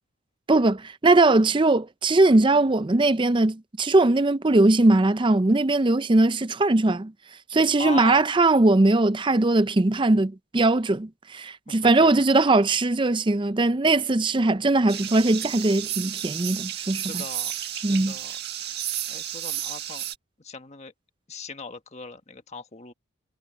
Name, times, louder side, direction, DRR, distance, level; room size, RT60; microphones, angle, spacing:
voice 1, 0.5-7.1 7.5-17.2 17.8-18.1, right 2 dB, 25° right, 0.5 m, -20 dB
voice 2, 7.8-8.3 11.7-12.1 17.1-18.4 19.1-20.0 20.4-20.9 21.3-22.9, left 4 dB, 30° left, 1.4 m, -38 dB
sound 1, 14.9-20.2, right 11 dB, 50° right, 1.7 m, -32 dB
head